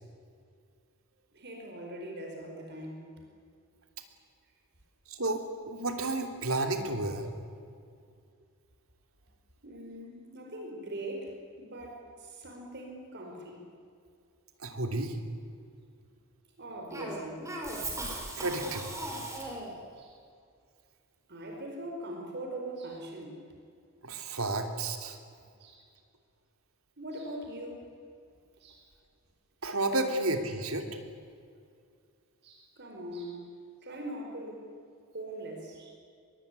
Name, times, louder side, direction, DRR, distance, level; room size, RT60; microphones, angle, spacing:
voice 1, 1.3-3.1 9.6-13.6 16.6-17.5 20.0-20.2 21.3-23.4 25.6-25.9 27.0-27.9 28.6-28.9 32.4-33.5 33.8-34.7 35.1-36.0, right 1 dB, 50° right, 2 dB, 4.8 m, -41 dB
voice 2, 5.1-7.3 14.6-15.2 18.4-19.0 24.0-25.2 29.6-30.9, right 2 dB, 70° right, 6 dB, 3.1 m, -31 dB
Cough, 16.9-19.8, right 1 dB, 15° right, 4.9 m, -38 dB
24.0 x 22.5 x 9.8 m, 2.3 s
head